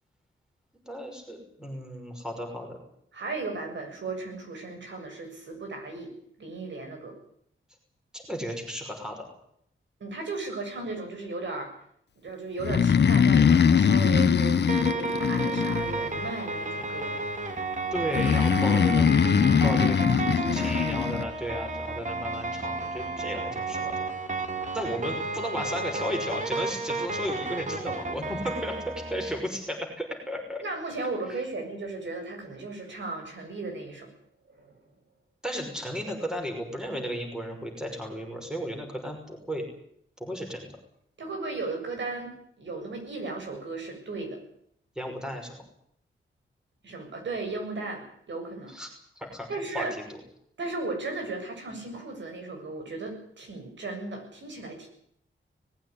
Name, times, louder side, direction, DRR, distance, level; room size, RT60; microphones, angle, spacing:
voice 1, 0.9-2.8 8.1-9.3 17.9-19.1 19.6-20.0 20.5-23.9 24.7-30.6 35.4-39.7 40.2-40.7 45.0-45.6 48.7-48.9 49.2-49.5 49.7-50.2, equal, 5° right, 2 dB, 5.9 m, -34 dB
voice 2, 3.1-6.1 6.4-7.1 10.0-11.7 12.2-17.1 20.4-20.8 30.6-34.1 34.5-34.7 41.2-42.3 42.6-44.4 46.8-48.7 49.5-49.9 50.6-54.9, right 3 dB, 65° right, 3 dB, 7.4 m, -35 dB
Breathing, 12.6-16.3 18.1-21.2, left 7 dB, 55° left, 1.3 m, -22 dB
sound 1, 14.7-29.4, right 3 dB, 35° right, 2.6 m, -32 dB
20.5 x 16.0 x 9.9 m, 0.68 s
wide cardioid pair, 170°, 20 cm